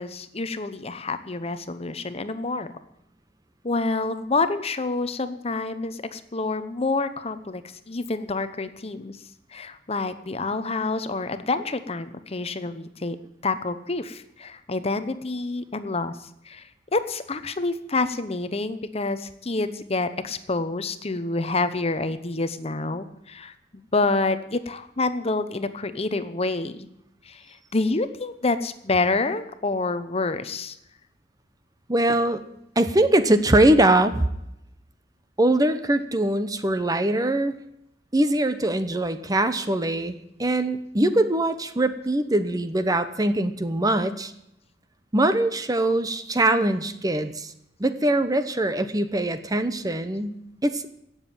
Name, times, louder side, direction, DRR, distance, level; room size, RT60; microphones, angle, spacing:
voice 1, 0.0-2.7 3.6-7.6 7.9-9.2 9.5-13.2 13.4-16.1 16.5-16.6 16.9-26.9 27.3-27.4 27.7-30.7 42.4-42.6, left 3 dB, 35° left, 11 dB, 0.9 m, -27 dB
voice 2, 31.9-32.4 32.8-34.3 35.4-37.5 38.1-44.3 45.1-47.5 47.8-50.9, right 1 dB, 20° right, 11 dB, 0.9 m, -22 dB
16.5 x 7.4 x 9.1 m, 0.79 s
head